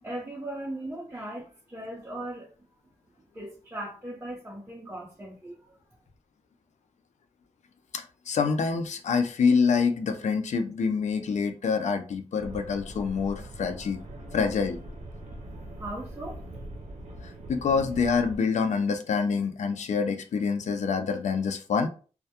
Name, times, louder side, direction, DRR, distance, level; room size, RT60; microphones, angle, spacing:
voice 1, 0.0-2.5 3.3-5.8 15.7-16.4, right 1 dB, 20° right, 0.6 m, -38 dB
voice 2, 7.9-14.0 14.3-14.8 17.2-21.9, left 5 dB, 80° left, 0.4 m, -26 dB
sound 1, 12.4-18.4, right 1 dB, 80° right, 0.5 m, -42 dB
2.2 x 2.1 x 2.8 m
wide cardioid pair, 85°, 12 cm